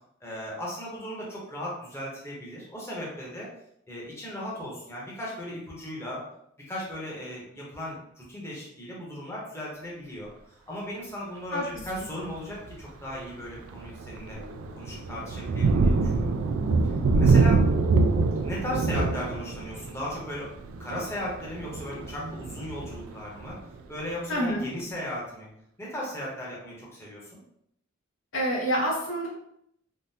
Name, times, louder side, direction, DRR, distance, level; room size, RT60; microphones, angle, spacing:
voice 1, 0.2-3.5 3.9-6.2 6.7-14.4 14.7-16.4 17.1-17.7 18.4-20.5 20.8-23.6 23.9-25.5 25.8-27.4, equal, 15° left, -5 dB, 0.9 m, -37 dB
Thunder, 11.8-12.1 12.6-12.8 13.2-23.8, right 3 dB, 85° right, 0.3 m, -25 dB
Bass guitar, 14.3-20.6, left 8 dB, 40° left, 0.4 m, -56 dB
voice 2, 24.3-24.6 28.3-29.3, equal, 70° left, -3 dB, 1.0 m, -27 dB
3.6 x 2.1 x 2.7 m, 0.73 s
head